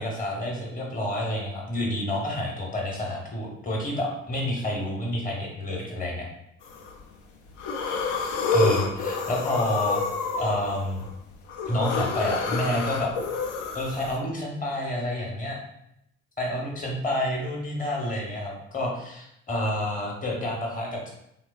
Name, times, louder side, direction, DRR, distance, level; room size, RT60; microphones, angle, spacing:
voice 1, 0.0-6.3 8.5-10.0 10.4-11.0 11.7-13.1 13.7-15.6 16.4-21.1, left 1 dB, 20° left, -1 dB, 1.0 m, -29 dB
sound 1, 6.6-7.0 7.5-14.2, left 4 dB, 55° left, 0.5 m, -28 dB
3.3 x 2.2 x 2.3 m, 0.77 s
figure-of-eight pair, 45°, 36 cm